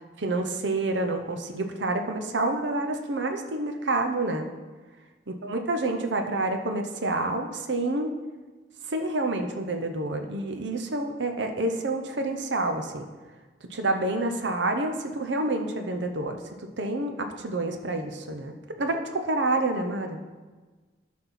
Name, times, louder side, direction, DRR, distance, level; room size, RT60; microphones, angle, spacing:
voice 1, 0.2-4.5 5.4-8.1 8.9-13.1 13.7-16.4 16.8-20.2, right 2 dB, 70° right, 5 dB, 0.8 m, -28 dB
12.0 x 4.3 x 5.8 m, 1.3 s
head